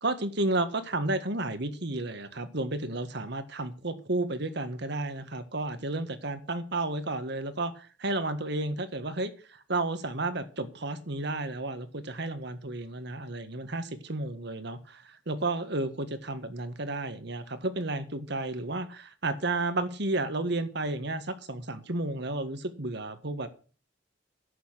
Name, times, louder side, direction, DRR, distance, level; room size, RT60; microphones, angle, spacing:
voice 1, 0.0-23.5, right 2 dB, 65° right, 10 dB, 1.7 m, -32 dB
11.0 x 8.3 x 8.2 m, 0.38 s
head